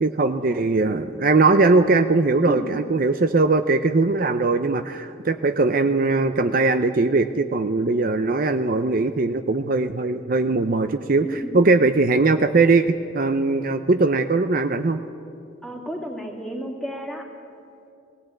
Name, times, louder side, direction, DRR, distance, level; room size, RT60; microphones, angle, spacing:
voice 1, 0.0-15.0, right 3 dB, 50° right, 9 dB, 0.6 m, -20 dB
voice 2, 11.2-11.6 15.6-17.3, right 1 dB, ahead, 0 dB, 2.5 m, -32 dB
18.0 x 17.0 x 9.0 m, 2.5 s
head